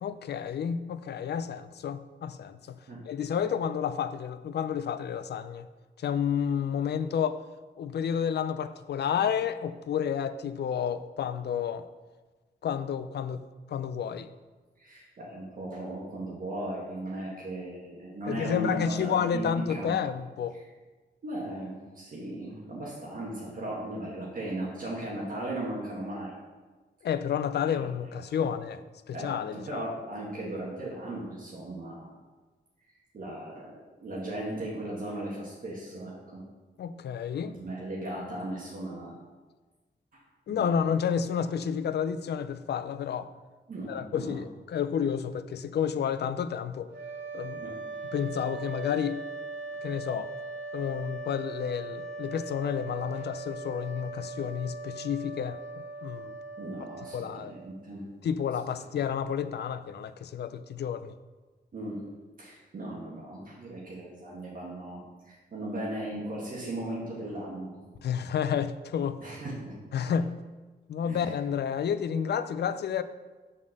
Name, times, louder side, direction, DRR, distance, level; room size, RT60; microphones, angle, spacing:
voice 1, 0.0-2.8 3.1-5.7 6.0-7.4 7.8-11.9 12.6-13.4 13.7-14.3 18.3-20.6 27.0-29.9 36.8-37.6 40.5-43.3 43.9-46.9 47.3-47.6 48.1-49.2 49.8-50.3 50.7-56.3 57.1-57.5 58.2-61.1 68.0-69.4 69.9-70.4 70.9-73.0, left 8 dB, 65° left, 13 dB, 0.4 m, -30 dB
voice 2, 14.8-19.9 21.2-26.3 27.6-27.7 28.3-28.5 29.1-32.1 33.1-36.4 37.5-39.1 40.1-40.2 40.5-40.7 43.7-44.4 47.6-47.8 56.6-58.0 61.7-62.0 62.4-67.8 69.2-69.7 71.1-71.3, right 1 dB, 50° right, -5 dB, 1.5 m, -37 dB
sound 1, 46.9-57.8, right 3 dB, 75° right, 2.0 m, -40 dB
7.2 x 4.2 x 6.5 m, 1.3 s
wide cardioid pair, 165°, 19 cm